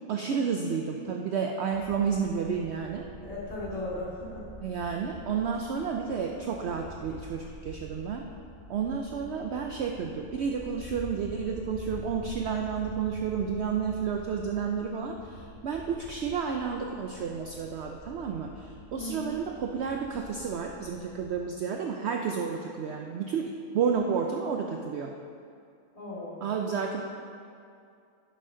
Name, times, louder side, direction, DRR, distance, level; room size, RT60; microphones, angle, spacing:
voice 1, 0.1-3.1 4.6-8.3 8.7-25.1 26.4-27.0, right 6 dB, 65° right, 2 dB, 0.7 m, -31 dB
sound 1, 1.7-21.4, right 1 dB, 15° right, 1.8 m, -47 dB
voice 2, 3.1-4.5 18.9-19.3 26.0-26.5, left 1 dB, 25° left, -8 dB, 2.2 m, -37 dB
10.5 x 6.5 x 3.7 m, 2.4 s
omnidirectional pair, 1.5 m